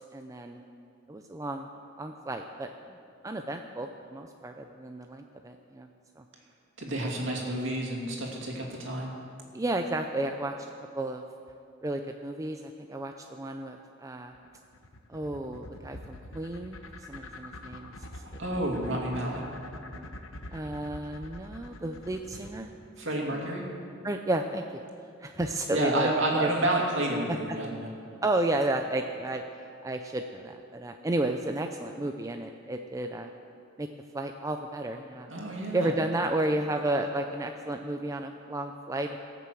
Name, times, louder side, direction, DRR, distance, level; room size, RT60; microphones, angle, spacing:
voice 1, 0.1-0.6 1.1-1.7 2.0-2.7 3.2-5.9 6.2-6.3 7.2-7.4 9.5-10.5 10.9-11.2 11.8-14.3 15.1-16.8 17.1-17.9 20.5-22.7 24.0-24.6 25.2-26.1 26.4-26.5 28.2-29.4 29.8-33.3 33.8-33.9 34.1-35.3 35.7-39.2, right 1 dB, 15° right, 5 dB, 0.4 m, -32 dB
voice 2, 6.8-9.1 18.4-19.4 23.0-23.7 25.7-27.9 35.3-35.9, right 1 dB, 65° right, -1 dB, 2.6 m, -30 dB
sound 1, 14.3-22.6, left 2 dB, 75° left, 1.1 m, -44 dB
18.0 x 6.9 x 7.7 m, 2.4 s
head